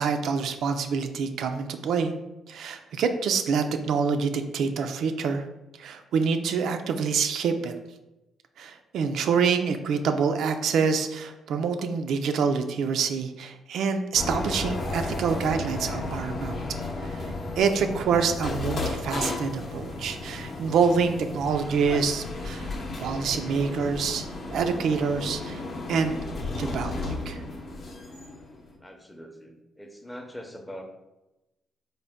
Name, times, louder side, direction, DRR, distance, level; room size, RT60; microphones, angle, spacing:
voice 1, 0.0-2.1 2.5-5.5 5.8-7.7 8.6-16.6 17.0-17.2 17.6-22.7 23.0-25.6 25.9-26.2 26.6-27.4, right 5 dB, 75° right, 6 dB, 0.3 m, -26 dB
sound 1, 14.2-28.7, left 2 dB, 50° left, 0.7 m, -33 dB
voice 2, 28.8-30.8, equal, 10° left, 4 dB, 0.6 m, -42 dB
3.9 x 2.1 x 3.4 m, 0.97 s
cardioid pair, 90°, 0 cm